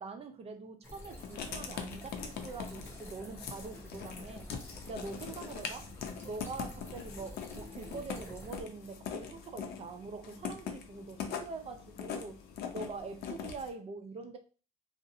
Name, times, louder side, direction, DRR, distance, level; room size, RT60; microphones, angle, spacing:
voice 1, 0.0-4.5 4.9-5.9 6.2-12.4 12.7-14.4, right 4 dB, 35° right, 0.5 m, -44 dB
sound 1, 0.8-8.6, left 1 dB, 15° left, 0.7 m, -49 dB
Writing, 1.2-13.7, left 7 dB, 70° left, 0.5 m, -42 dB
2.5 x 2.0 x 2.7 m
cardioid pair, 110°, 17 cm